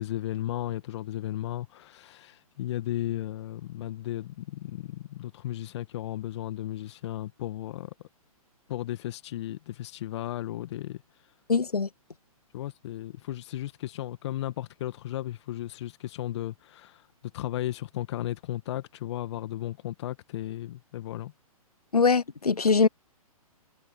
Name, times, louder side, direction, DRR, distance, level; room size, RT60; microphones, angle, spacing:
voice 1, 0.0-7.9 8.7-11.0 12.5-17.0 17.3-21.3, left 13 dB, 50° left, 1.6 m, -35 dB
voice 2, 11.5-11.9 21.9-22.9, left 5 dB, 90° left, 0.9 m, -22 dB
figure-of-eight pair, 125°, 19 cm